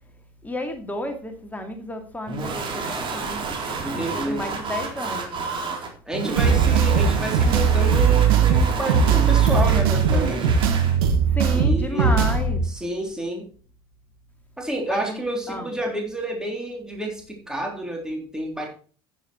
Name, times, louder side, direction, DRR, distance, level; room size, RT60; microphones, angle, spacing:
voice 1, 0.4-3.4 3.9-5.4 11.3-12.6 14.9-15.2 15.5-15.7, left 1 dB, 15° left, 4 dB, 2.4 m, -31 dB
sound 1, 2.3-11.0, right 4 dB, 40° right, 4.0 m, -30 dB
voice 2, 3.8-4.5 6.1-10.5 11.5-12.1 12.7-13.4 14.6-18.7, right 1 dB, 5° right, 0 dB, 3.8 m, -29 dB
sound 2, 6.4-12.6, right 6 dB, 80° right, 2.1 m, -19 dB
10.0 x 9.4 x 4.5 m, 0.41 s
hypercardioid pair, 70°, 12 cm